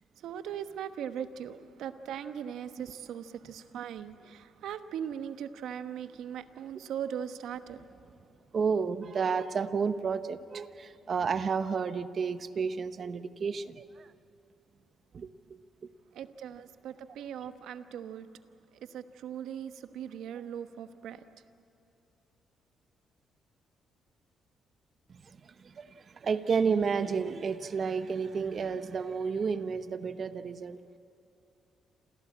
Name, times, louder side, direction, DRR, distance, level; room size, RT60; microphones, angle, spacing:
voice 1, 0.2-7.9 16.1-18.3 18.9-21.2, right 9 dB, 80° right, 10 dB, 1.1 m, -39 dB
voice 2, 8.5-14.1 15.1-15.6 25.1-30.8, right 5 dB, 45° right, 12 dB, 0.9 m, -31 dB
27.5 x 16.5 x 8.6 m, 2.8 s
cardioid pair, 90°, 0 cm